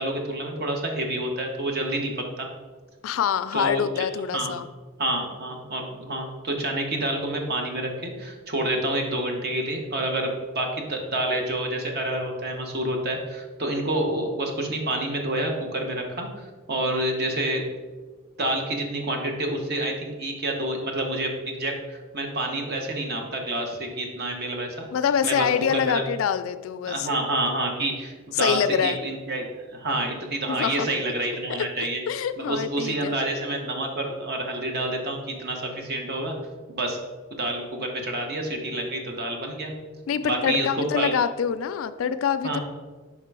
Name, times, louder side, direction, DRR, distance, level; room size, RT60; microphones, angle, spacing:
voice 1, 0.0-2.5 3.5-4.1 4.3-4.5 5.0-17.6 18.4-24.9 25.2-26.0 26.9-29.5 29.7-32.0 32.4-36.3 36.7-37.0 37.3-39.7 40.2-40.7 41.0-41.1 42.4-42.6, right 1 dB, 55° right, 2 dB, 1.0 m, -28 dB
voice 2, 3.0-4.7 24.9-27.1 28.3-29.0 30.5-30.9 31.6-31.7 32.1-33.2 40.1-42.6, left 7 dB, 80° left, 12 dB, 0.3 m, -25 dB
5.5 x 3.7 x 4.7 m, 1.4 s
head